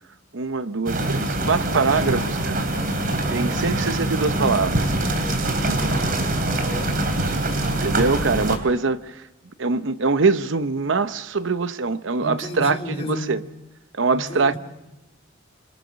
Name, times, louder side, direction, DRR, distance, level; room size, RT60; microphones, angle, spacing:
voice 1, 0.3-2.7 3.3-4.9 7.8-9.0 9.6-12.8 13.1-13.4 14.0-14.5, right 4 dB, 65° right, 0.8 m, -23 dB
sound 1, 0.9-8.6, right 1 dB, 45° right, 3.3 m, -24 dB
voice 2, 6.5-7.0 12.2-13.4 14.1-14.6, left 1 dB, 30° left, 4.0 m, -32 dB
27.0 x 25.5 x 6.3 m
head